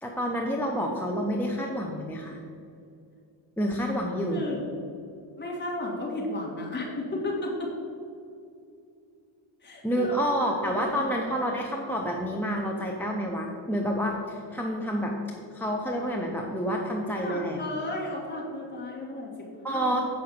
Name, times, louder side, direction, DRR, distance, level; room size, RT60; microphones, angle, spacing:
voice 1, 0.0-2.4 3.6-4.4 9.8-15.2 15.5-17.7 19.6-20.0, equal, 5° left, -1 dB, 0.4 m, -28 dB
voice 2, 4.3-4.6 5.4-7.7 9.6-10.2 10.5-11.4 17.2-19.9, left 1 dB, 20° left, -3 dB, 2.0 m, -34 dB
7.7 x 5.5 x 5.7 m, 2.5 s
cardioid pair, 155°, 49 cm